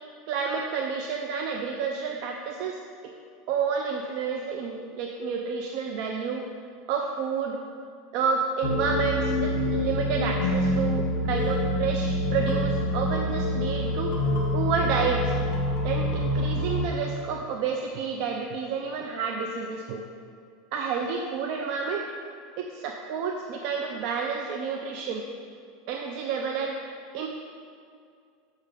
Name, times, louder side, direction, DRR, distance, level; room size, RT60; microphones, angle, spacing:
voice 1, 0.3-2.8 3.5-6.5 6.9-7.6 8.1-14.1 14.5-15.3 15.8-20.0 20.7-22.1 22.6-25.2 25.9-26.8 27.1-27.3, right 5 dB, 50° right, 2 dB, 0.5 m, -30 dB
sound 1, 8.6-16.8, left 1 dB, 60° left, 1.9 m, -26 dB
6.5 x 4.9 x 6.6 m, 2.3 s
supercardioid pair, 150°, 0 cm